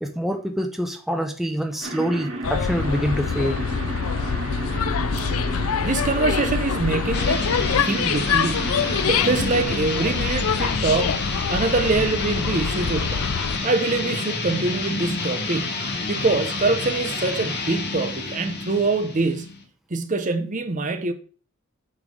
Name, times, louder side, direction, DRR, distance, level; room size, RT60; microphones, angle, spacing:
voice 1, 0.0-3.6, equal, ahead, 0.7 m, -26 dB
sound 1, 1.8-9.7, right 1 dB, 65° right, 1.7 m, -33 dB
sound 2, 2.4-13.6, left 6 dB, 80° left, 0.5 m, -25 dB
voice 2, 5.8-7.5 7.8-11.2 11.5-13.3 13.6-19.6 19.9-21.1, right 3 dB, 35° right, 0.8 m, -24 dB
sound 3, 7.1-19.6, left 3 dB, 55° left, 1.7 m, -29 dB
8.7 x 3.4 x 6.3 m
head